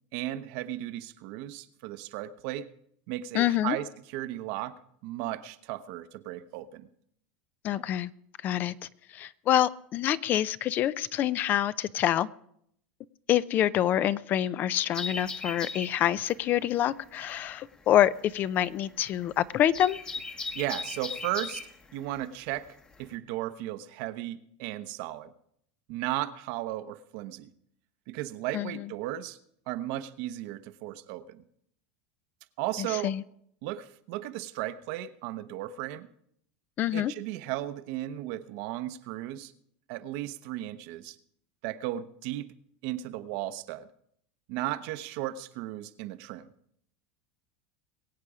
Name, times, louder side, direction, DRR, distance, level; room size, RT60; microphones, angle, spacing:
voice 1, 0.1-2.7 3.1-6.9 20.5-21.7 21.9-25.3 25.9-27.5 28.1-29.4 29.7-31.4 32.6-33.1 33.6-36.1 36.9-39.5 39.9-41.2 41.6-42.5 42.8-43.9 44.5-46.5, right 14 dB, 60° right, 11 dB, 0.9 m, -35 dB
voice 2, 3.3-3.8 7.6-8.1 8.4-8.7 9.1-12.3 13.3-20.0 28.5-28.8 32.8-33.2 36.8-37.1, left 11 dB, 40° left, 18 dB, 0.5 m, -26 dB
sound 1, 14.9-23.1, left 3 dB, 15° left, 1.0 m, -39 dB
22.0 x 8.4 x 4.9 m, 0.70 s
supercardioid pair, 130°, 5 cm